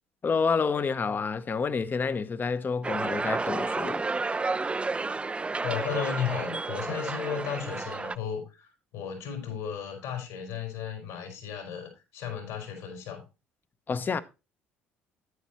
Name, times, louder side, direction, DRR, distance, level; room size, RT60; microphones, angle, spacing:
voice 1, 0.2-4.1 13.9-14.2, left 5 dB, 35° left, 0.9 m, -28 dB
sound 1, 2.8-8.2, right 3 dB, 20° right, 0.5 m, -31 dB
voice 2, 5.6-13.2, left 8 dB, 70° left, 4.3 m, -34 dB
10.0 x 9.5 x 3.0 m
hypercardioid pair, 55°, 6 cm